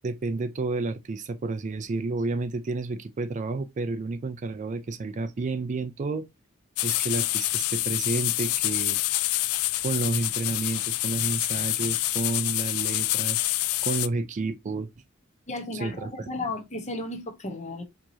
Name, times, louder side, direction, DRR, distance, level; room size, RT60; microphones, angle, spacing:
voice 1, 0.0-6.3 6.8-9.0 9.3-9.5 9.8-13.4 13.8-14.9 15.7-16.3, right 3 dB, 35° right, 0.3 m, -30 dB
sound 1, 6.8-14.1, left 17 dB, 85° left, 0.3 m, -27 dB
voice 2, 15.5-17.8, left 2 dB, 35° left, 0.9 m, -34 dB
4.6 x 2.9 x 2.7 m
head